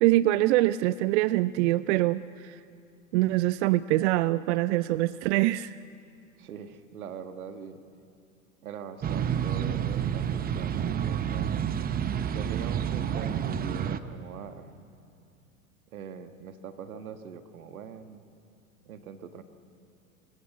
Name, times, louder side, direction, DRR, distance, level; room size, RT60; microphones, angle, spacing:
voice 1, 0.0-2.6 3.1-5.8, right 17 dB, 55° right, 16 dB, 0.5 m, -24 dB
voice 2, 6.4-7.8 8.6-11.5 12.3-14.7 15.9-18.2 18.8-19.4, right 7 dB, 80° right, 8 dB, 1.6 m, -42 dB
sound 1, 9.0-14.0, right 9 dB, 20° right, 0.8 m, -29 dB
24.5 x 15.5 x 8.3 m, 2.5 s
hypercardioid pair, 100°, 42 cm